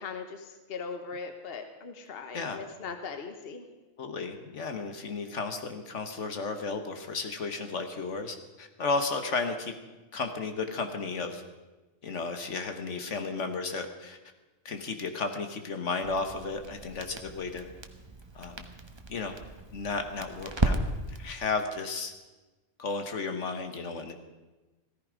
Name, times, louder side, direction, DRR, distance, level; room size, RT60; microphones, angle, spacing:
voice 1, 0.0-3.6, left 5 dB, 50° left, 7 dB, 1.2 m, -39 dB
voice 2, 4.0-9.7 10.1-11.4 12.0-14.2 14.6-17.7 18.3-18.7 19.1-19.4 19.7-20.8 21.2-22.1 22.8-24.1, left 4 dB, 70° left, 6 dB, 1.5 m, -33 dB
Crackle, 16.0-21.3, right 2 dB, 25° right, 0.9 m, -35 dB
15.5 x 14.5 x 5.1 m, 1.2 s
omnidirectional pair, 1.3 m